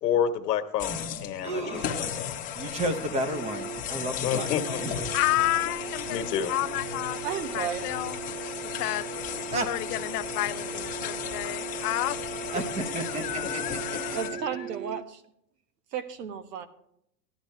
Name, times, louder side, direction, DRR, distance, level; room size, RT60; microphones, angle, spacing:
voice 1, 0.0-2.4 4.2-4.6 6.1-6.5 13.4-13.5, left 8 dB, 85° left, 8 dB, 1.4 m, -29 dB
sound 1, 0.8-14.3, left 8 dB, 15° left, 0.8 m, -35 dB
voice 2, 1.4-2.1 2.5-5.2 9.5-9.7 12.5-14.2, right 1 dB, 15° right, 9 dB, 0.7 m, -33 dB
sound 2, 2.8-15.0, right 10 dB, 55° right, 0.6 m, -40 dB
voice 3, 5.1-7.2 7.5-8.2 8.8-9.1 9.5-12.2 13.0-14.6, left 16 dB, 70° left, 13 dB, 0.8 m, -31 dB
voice 4, 7.2-7.9 14.1-15.2 15.9-16.7, right 8 dB, 85° right, 11 dB, 1.5 m, -33 dB
14.5 x 11.5 x 3.2 m, 0.74 s
supercardioid pair, 155°, 47 cm